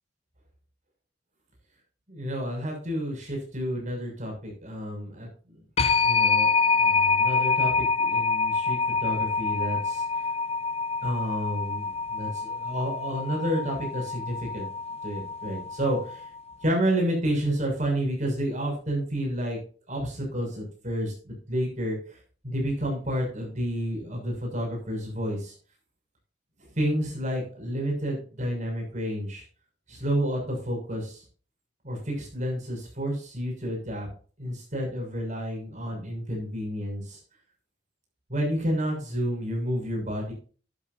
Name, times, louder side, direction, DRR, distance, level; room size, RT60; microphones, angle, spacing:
voice 1, 2.1-5.3 6.0-10.3 11.0-14.7 15.0-16.3 16.6-19.6 19.9-22.2 22.4-25.5 26.6-29.4 29.9-31.2 31.8-34.1 34.4-37.2 38.3-40.3, equal, 40° right, 1 dB, 6.8 m, -30 dB
sound 1, 5.8-16.4, left 4 dB, 35° left, 0.7 m, -26 dB
13.0 x 11.5 x 2.7 m, 0.40 s
head